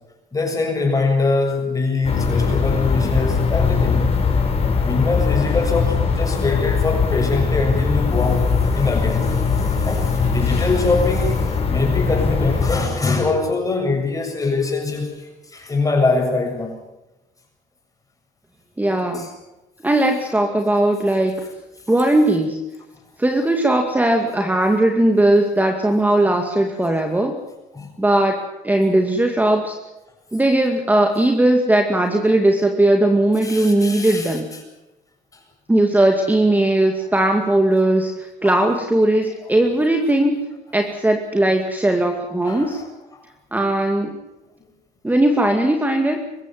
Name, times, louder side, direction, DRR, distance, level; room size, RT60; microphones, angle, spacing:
voice 1, 0.3-4.1 4.8-16.8 19.1-19.3 27.7-27.9 33.4-34.4 35.3-35.4 38.4-38.5 39.4-39.5 42.5-42.9 43.1-43.2, left 3 dB, 20° left, 2 dB, 7.5 m, -23 dB
sound 1, 2.0-12.8, left 5 dB, 35° left, 5.3 m, -20 dB
voice 2, 18.8-19.3 19.8-21.3 21.9-22.6 23.2-27.4 28.0-28.3 28.6-29.8 30.3-34.5 35.7-40.4 40.7-42.8 43.5-44.2 45.0-46.2, right 1 dB, 10° right, 4 dB, 2.2 m, -18 dB
23.5 x 14.5 x 9.4 m, 1.0 s
cardioid pair, 110°, 17 cm